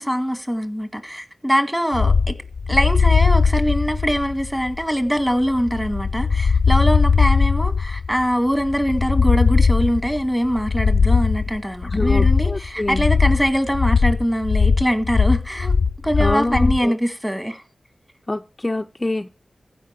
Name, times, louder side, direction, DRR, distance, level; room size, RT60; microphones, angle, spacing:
voice 1, 0.0-2.4 2.7-15.7 16.0-17.6, equal, 5° right, 1.9 m, -22 dB
sound 1, 1.9-16.9, left 5 dB, 70° left, 0.6 m, -19 dB
voice 2, 11.9-13.1 16.2-17.0 18.3-19.3, left 2 dB, 25° left, 0.5 m, -25 dB
15.0 x 5.1 x 6.6 m
wide cardioid pair, 90°, 0 cm